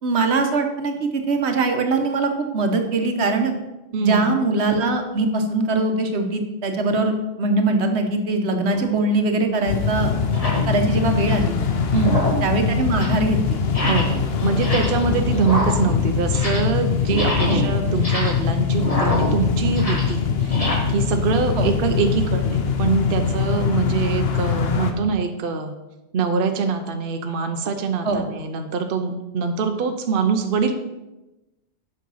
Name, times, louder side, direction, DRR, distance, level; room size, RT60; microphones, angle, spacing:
voice 1, 0.0-3.5 4.0-10.1 10.7-11.6 12.4-13.6 17.5-17.6 21.5-21.7 28.0-28.2, right 2 dB, 80° right, 5 dB, 1.3 m, -22 dB
voice 2, 3.9-4.3 11.9-12.3 13.8-20.6 20.9-25.7 26.1-30.7, right 5 dB, 60° right, 6 dB, 0.9 m, -24 dB
sound 1, 8.7-8.9 9.6-9.7 10.2-10.7 11.1-11.5 11.9-12.5 12.8-13.3 13.7-14.2 14.5-15.1 15.4-16.8 17.0-20.7, equal, 35° left, 1.8 m, -27 dB
sound 2, 9.7-24.9, left 6 dB, 70° left, 1.0 m, -22 dB
7.5 x 5.9 x 5.5 m, 1.0 s
omnidirectional pair, 1.1 m